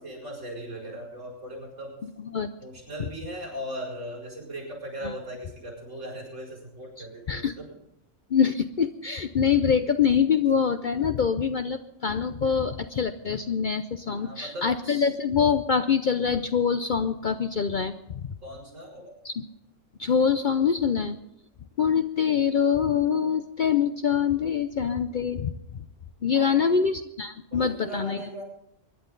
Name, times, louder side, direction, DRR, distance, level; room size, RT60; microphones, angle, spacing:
voice 1, 0.0-1.9 2.6-7.7 14.1-15.1 18.4-19.1 26.3-26.8 27.5-28.4, right 1 dB, 70° right, -2 dB, 6.6 m, -38 dB
voice 2, 7.0-7.5 8.3-18.2 19.2-19.4 20.0-21.2 21.8-25.5 26.2-28.2, left 7 dB, 50° left, 9 dB, 0.6 m, -24 dB
24.0 x 11.0 x 3.9 m, 0.80 s
omnidirectional pair, 1.3 m